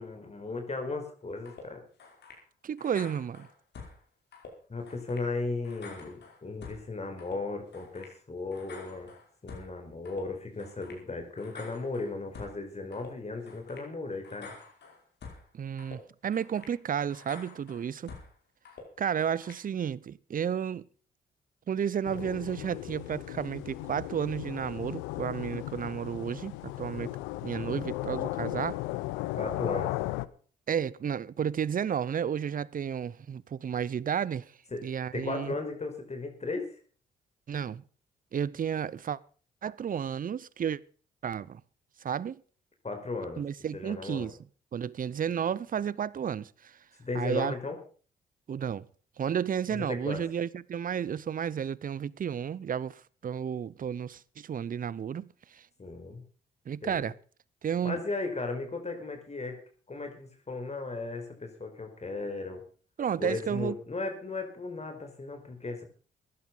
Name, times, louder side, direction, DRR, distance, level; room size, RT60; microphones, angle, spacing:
voice 1, 0.0-1.8 4.7-9.1 9.4-14.5 29.3-29.9 34.7-34.8 35.1-36.7 42.8-43.4 43.7-44.3 47.0-47.8 49.7-50.2 55.8-56.2 56.8-57.1 57.8-59.6 59.9-62.6 63.2-65.9, left 3 dB, 35° left, 4.8 m, -36 dB
sound 1, 1.5-1.6 2.0-2.4 2.8-4.0 4.3-4.5 4.9-5.3 5.6-6.8 7.2-7.4 7.7-8.1 8.5-9.7 10.1-10.2 10.6-11.0 11.4-12.6 12.9-13.1 13.5-13.9 14.2-15.4 15.8-16.0 16.3-16.7 17.1-18.3 18.6-18.8 19.2-19.6, left 4 dB, 65° left, 5.1 m, -48 dB
voice 2, 2.6-3.5 15.5-18.1 19.0-20.9 21.7-27.1 27.4-28.8 30.7-34.5 34.8-35.5 37.5-37.8 38.3-39.2 39.6-40.8 41.2-41.6 42.0-42.4 43.4-44.4 44.7-46.8 47.1-47.5 48.5-48.9 49.2-55.6 56.7-57.1 57.6-58.0 63.0-63.8, right 8 dB, 45° right, 0.7 m, -32 dB
sound 2, 22.1-30.3, left 18 dB, 90° left, 0.6 m, -36 dB
15.5 x 11.0 x 5.5 m
supercardioid pair, 50°, 19 cm